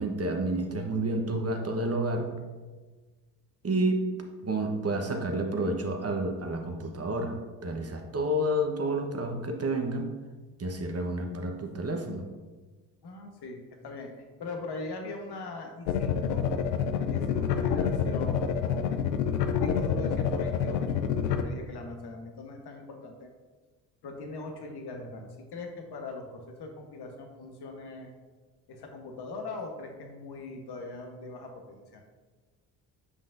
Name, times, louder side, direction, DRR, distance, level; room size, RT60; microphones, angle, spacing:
voice 1, 0.0-2.3 3.6-4.0 4.4-10.1 10.6-12.2, right 1 dB, 30° right, 3 dB, 1.1 m, -30 dB
voice 2, 13.0-16.4 17.0-19.1 19.5-23.3 24.0-28.1 28.7-32.0, left 3 dB, 55° left, 3 dB, 1.3 m, -41 dB
sound 1, 15.9-21.4, left 7 dB, 90° left, 0.6 m, -27 dB
8.2 x 5.3 x 2.6 m, 1.3 s
hypercardioid pair, 50°, 49 cm